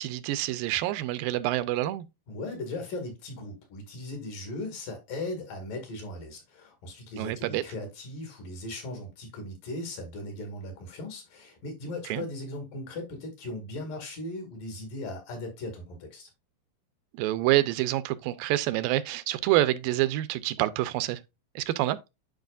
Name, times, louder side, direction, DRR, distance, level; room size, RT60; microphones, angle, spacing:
voice 1, 0.0-2.0 7.2-7.6 12.1-12.3 17.1-21.2 21.6-22.0, right 15 dB, 85° right, 2.3 m, -27 dB
voice 2, 2.3-16.3, left 2 dB, 70° left, 3.9 m, -38 dB
10.5 x 4.7 x 2.5 m
omnidirectional pair, 4.0 m